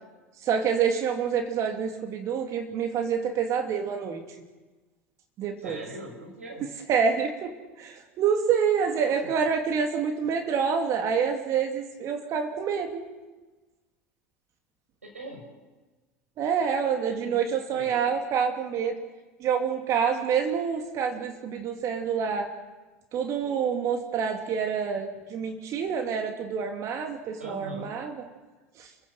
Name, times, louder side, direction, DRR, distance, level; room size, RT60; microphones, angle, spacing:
voice 1, 0.4-4.2 5.4-5.8 6.9-7.5 7.8-13.0 16.4-19.0 19.4-22.5 23.1-28.1 28.8-28.9, right 6 dB, 45° right, 4 dB, 2.8 m, -27 dB
voice 2, 5.6-6.7 8.9-9.3 15.0-15.5 17.0-18.1 27.4-27.9, right 1 dB, 90° right, 2 dB, 6.0 m, -41 dB
29.5 x 16.5 x 7.4 m, 1.2 s
figure-of-eight pair, 75°, 7 cm